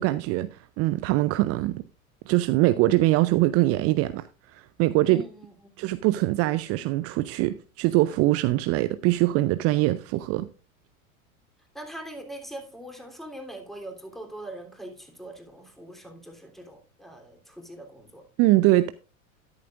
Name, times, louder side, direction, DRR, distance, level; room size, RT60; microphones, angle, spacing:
voice 1, 0.0-1.8 2.3-4.2 4.5-5.2 5.8-10.5 18.4-18.9, right 17 dB, 35° right, 0.5 m, -23 dB
voice 2, 5.0-5.9 11.7-18.3, right 1 dB, ahead, 3.2 m, -42 dB
12.5 x 10.5 x 2.5 m
figure-of-eight pair, 85°, 42 cm